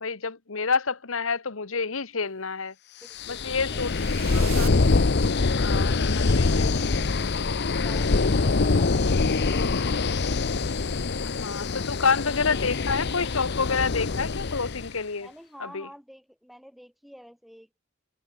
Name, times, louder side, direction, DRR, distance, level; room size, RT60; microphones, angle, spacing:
voice 1, 0.0-2.7 3.3-4.8 5.5-6.7 11.2-15.3 15.6-15.9, left 5 dB, 70° left, 1.3 m, -28 dB
voice 2, 3.0-3.9 6.4-7.4 7.7-9.9 15.2-17.7, equal, ahead, 3.4 m, -49 dB
sound 1, 3.2-14.9, left 3 dB, 55° left, 0.8 m, -24 dB
sound 2, 3.6-5.8, right 11 dB, 85° right, 5.4 m, -43 dB
head